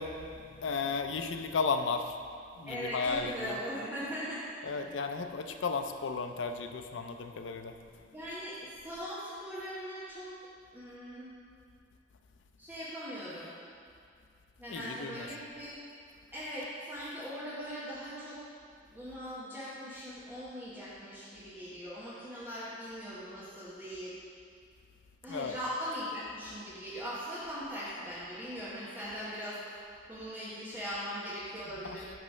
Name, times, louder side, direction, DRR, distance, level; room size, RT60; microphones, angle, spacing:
voice 1, 0.0-2.1 2.6-3.6 4.6-7.7 14.7-15.3 25.3-25.5 31.8-32.0, left 4 dB, 90° left, 7 dB, 0.5 m, -34 dB
voice 2, 2.7-4.4 4.7-4.9 8.1-10.3 10.7-11.3 12.6-13.5 14.6-15.8 16.3-18.4 18.9-24.1 25.2-29.8 30.1-32.1, equal, 10° right, -11 dB, 1.1 m, -40 dB
9.3 x 3.2 x 6.1 m, 2.3 s
head